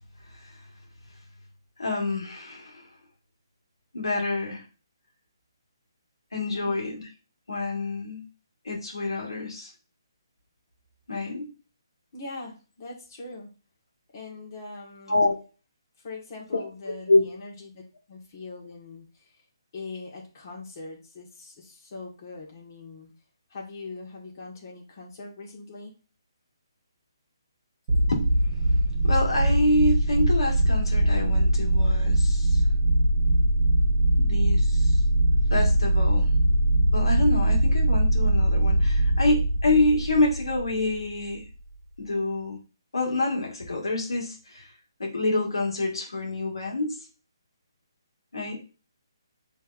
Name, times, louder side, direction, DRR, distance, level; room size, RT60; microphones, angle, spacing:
voice 1, 1.8-2.8 3.9-4.6 6.3-7.0 7.5-8.2 8.6-9.7 11.1-11.5 15.1-15.4 16.5-16.6 17.1-17.2 28.1-28.3 29.0-32.6 34.2-34.9 35.5-36.3 36.9-41.4 42.0-42.6 42.9-44.7 45.0-47.0 48.3-48.6, left 2 dB, 90° left, -1 dB, 1.7 m, -26 dB
voice 2, 6.5-6.8 12.1-13.5 14.1-15.4 16.0-17.8 18.1-19.3 19.7-23.1 23.5-25.9, left 3 dB, 40° left, -2 dB, 1.5 m, -41 dB
sound 1, 27.9-41.2, right 1 dB, 35° right, 1.4 m, -22 dB
6.3 x 3.3 x 2.5 m, 0.34 s
hypercardioid pair, 155°, 2 cm